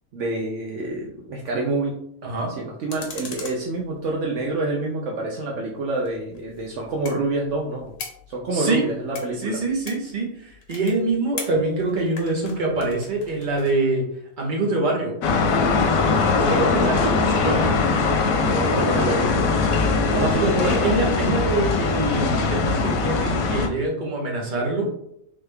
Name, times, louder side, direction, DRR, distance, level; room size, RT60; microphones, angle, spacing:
voice 1, 0.1-2.0 2.6-7.9 8.3-9.6 18.2-21.0, right 2 dB, 70° right, -1 dB, 0.9 m, -27 dB
sound 1, 2.9-4.5 5.9-13.8, left 4 dB, 70° left, 1.2 m, -41 dB
voice 2, 8.5-8.8 9.4-14.0 14.4-15.1 16.4-17.8 20.4-24.9, right 2 dB, 40° right, -1 dB, 1.1 m, -25 dB
sound 2, 15.2-23.7, left 4 dB, 90° left, 1.0 m, -21 dB
3.5 x 3.2 x 3.3 m, 0.72 s
omnidirectional pair, 1.4 m